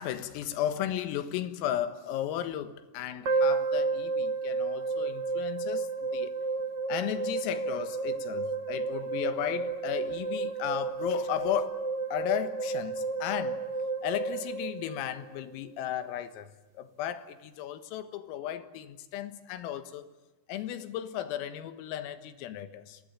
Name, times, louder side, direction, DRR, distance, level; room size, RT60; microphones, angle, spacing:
voice 1, 0.0-6.3 6.9-11.8 12.1-13.6 14.0-16.5 16.8-20.0 20.5-23.0, left 11 dB, 85° left, 4.1 m, -35 dB
sound 1, 3.2-15.5, right 4 dB, 40° right, 1.5 m, -31 dB
28.5 x 23.5 x 8.6 m
omnidirectional pair, 6.0 m